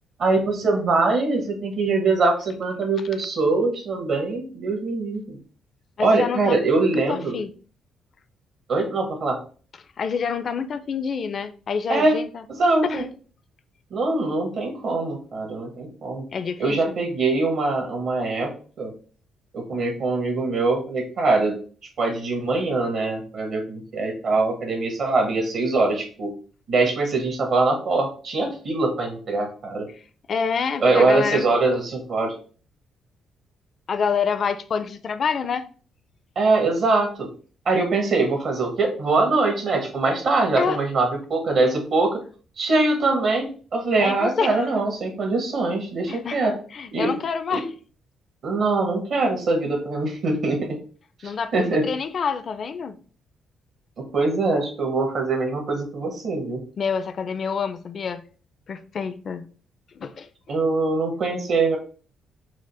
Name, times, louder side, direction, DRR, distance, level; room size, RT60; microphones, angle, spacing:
voice 1, 0.2-5.4 6.0-7.4 8.7-9.4 11.9-12.1 12.5-13.0 13.9-16.3 16.6-18.9 19.5-21.6 22.0-26.3 26.7-29.9 30.8-32.3 36.3-37.3 37.6-42.2 42.6-46.5 46.9-47.1 47.5-47.6 48.4-50.8 51.2-51.9 54.0-56.6 60.5-61.8, right 3 dB, 65° right, 1.2 m, -23 dB
voice 2, 6.0-6.6 6.9-7.5 10.0-12.4 12.9-13.1 16.3-17.0 30.3-31.5 33.9-35.7 40.6-40.8 44.0-44.5 46.1-46.4 46.7-47.7 51.2-53.0 56.8-58.2 58.7-59.5 60.0-60.3, left 6 dB, 50° left, 0.4 m, -27 dB
4.8 x 2.0 x 4.2 m
cardioid pair, 90°, 0 cm